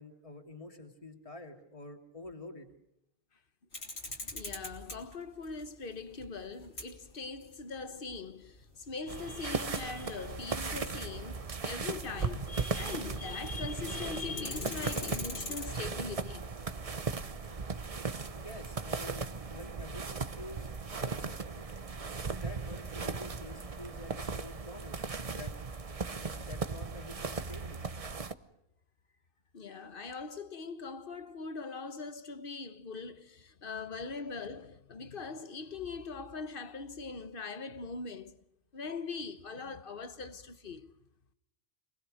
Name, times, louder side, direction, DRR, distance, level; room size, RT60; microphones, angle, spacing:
voice 1, 0.0-2.7 18.3-20.7 21.0-21.7 22.3-25.5 26.0-27.8, left 2 dB, 30° left, 2.5 m, -48 dB
sound 1, 3.7-13.3 13.6-13.7 14.0-15.7, left 2 dB, 75° left, 3.7 m, -44 dB
voice 2, 4.3-17.0 17.6-17.7 29.5-38.4 38.7-40.9, left 4 dB, 55° left, 1.4 m, -41 dB
sound 2, 9.1-28.3, right 4 dB, 35° right, 0.9 m, -37 dB
27.0 x 20.0 x 6.5 m
omnidirectional pair, 1.1 m